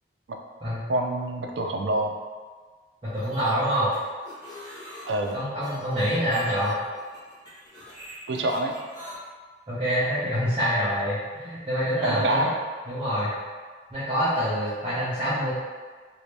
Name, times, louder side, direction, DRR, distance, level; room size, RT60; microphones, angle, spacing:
voice 1, 0.9-2.1 5.1-5.4 8.3-8.7 12.0-12.5, right 1 dB, 75° right, 2 dB, 0.4 m, -26 dB
sound 1, 3.0-9.1, equal, 25° left, 1.3 m, -44 dB
voice 2, 3.0-3.9 5.3-6.8 9.7-12.5 12.9-13.3 13.9-15.5, equal, 30° right, -11 dB, 0.7 m, -26 dB
3.1 x 2.7 x 3.3 m, 1.5 s
head